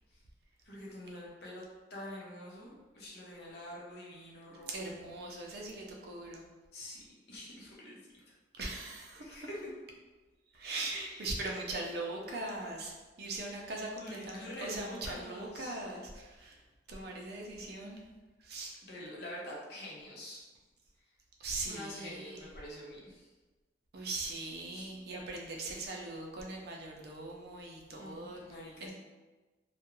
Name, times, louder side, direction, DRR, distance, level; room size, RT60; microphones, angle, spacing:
voice 1, 0.6-5.2 6.7-7.0 7.3-8.0 9.2-9.5 10.9-11.3 14.0-15.8 18.9-20.4 21.6-23.3 24.7-24.9 28.0-28.9, left 1 dB, 60° left, -4 dB, 0.7 m, -46 dB
voice 2, 4.5-6.5 8.5-9.5 10.5-16.6 16.9-18.0 18.4-18.7 21.4-22.4 23.9-28.4 28.8-28.9, right 2 dB, 60° right, 0 dB, 0.5 m, -40 dB
2.4 x 2.2 x 3.0 m, 1.2 s
head